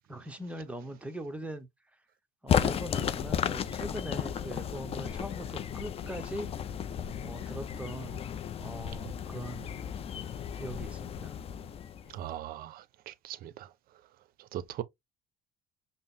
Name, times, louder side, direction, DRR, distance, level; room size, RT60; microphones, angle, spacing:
voice 1, 0.1-1.7 2.4-6.5 7.2-8.2 8.6-9.7 10.6-11.3, right 1 dB, 5° right, 0.7 m, -41 dB
sound 1, 2.5-12.3, left 8 dB, 35° left, 0.4 m, -34 dB
voice 2, 12.1-13.7 14.5-14.8, right 11 dB, 55° right, 0.5 m, -39 dB
5.4 x 2.0 x 2.5 m
supercardioid pair, 100°, 18 cm